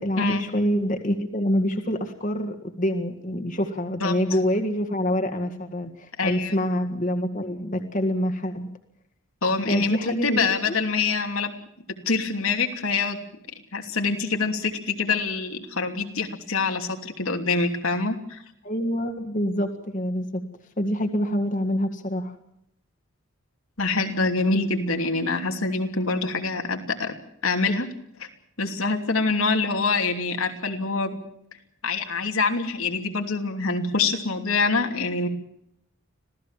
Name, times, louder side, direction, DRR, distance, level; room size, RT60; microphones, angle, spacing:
voice 1, 0.0-8.7 9.7-10.8 18.6-20.4 20.8-22.3, equal, 35° left, 6 dB, 1.9 m, -26 dB
voice 2, 6.2-6.5 9.4-11.5 12.0-13.2 13.7-18.4 23.8-27.1 27.4-27.9 28.2-28.3 28.6-31.2 31.8-35.3, left 4 dB, 85° left, 4 dB, 3.0 m, -25 dB
26.0 x 17.0 x 7.5 m, 0.75 s
head